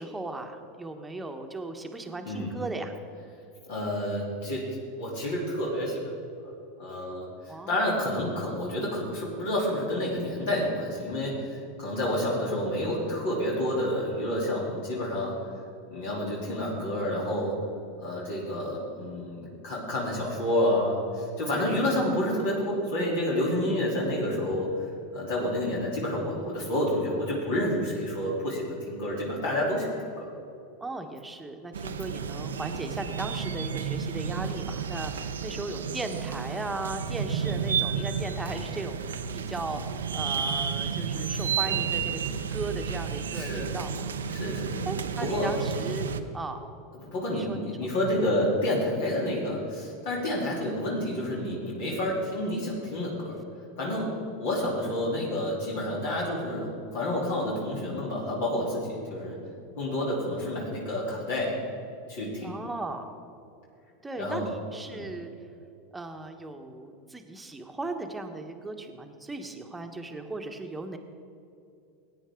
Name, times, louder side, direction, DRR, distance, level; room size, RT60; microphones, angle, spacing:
voice 1, 0.0-2.9 7.5-7.9 21.5-21.8 30.8-44.1 44.8-46.7 47.3-47.7 62.4-63.1 64.0-65.3 65.9-71.0, right 2 dB, 10° right, 5 dB, 1.2 m, -37 dB
voice 2, 3.7-4.6 5.0-6.0 6.4-6.5 6.8-15.5 15.9-17.6 18.0-24.7 25.1-30.3 37.4-37.6 41.7-41.8 43.3-43.7 44.3-44.9 45.2-45.5 47.0-53.4 53.8-59.4 59.8-61.6 62.1-62.5 64.2-64.5 64.9-65.1, left 1 dB, 65° left, -4 dB, 3.1 m, -29 dB
sound 1, 31.7-46.2, right 6 dB, 85° right, 0.6 m, -32 dB
16.0 x 9.2 x 3.8 m, 2.7 s
hypercardioid pair, 95°, 0 cm